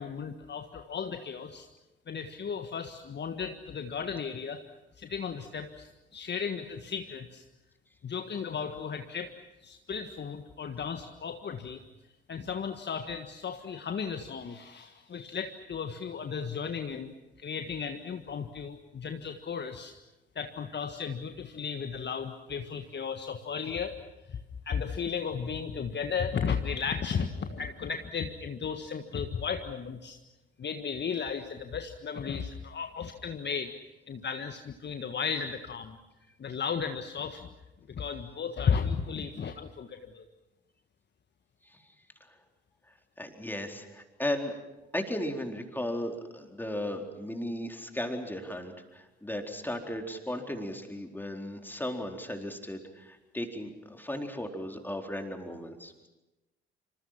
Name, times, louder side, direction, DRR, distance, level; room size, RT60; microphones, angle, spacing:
voice 1, 0.0-1.7 2.1-4.6 5.0-7.4 8.0-9.3 9.6-11.8 12.3-17.1 17.4-19.9 20.3-23.9 24.3-24.4 24.6-30.2 30.6-33.7 34.1-36.0 36.4-37.5 37.9-40.2, left 6 dB, 35° left, 6 dB, 1.6 m, -35 dB
voice 2, 43.2-44.6 44.9-56.1, left 1 dB, 5° left, 3 dB, 4.2 m, -36 dB
27.5 x 27.0 x 5.9 m, 1.0 s
figure-of-eight pair, 50°, 31 cm